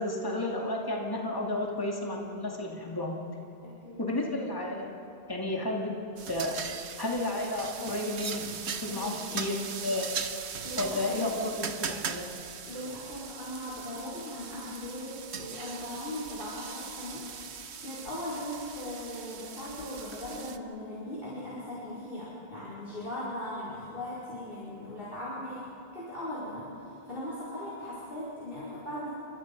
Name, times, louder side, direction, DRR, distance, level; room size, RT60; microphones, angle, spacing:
voice 1, 0.0-3.2 4.0-5.0 5.3-5.9 6.3-6.6 7.0-10.1 10.8-12.4, left 1 dB, 20° left, -1 dB, 2.5 m, -32 dB
voice 2, 3.6-4.0 8.9-9.4 10.6-11.0 12.7-17.3 17.8-26.7 27.1-29.1, left 1 dB, 55° left, -8 dB, 5.0 m, -39 dB
sound 1, 6.2-20.6, right 6 dB, 90° right, 1.3 m, -40 dB
29.0 x 26.0 x 5.3 m, 2.8 s
omnidirectional pair, 1.1 m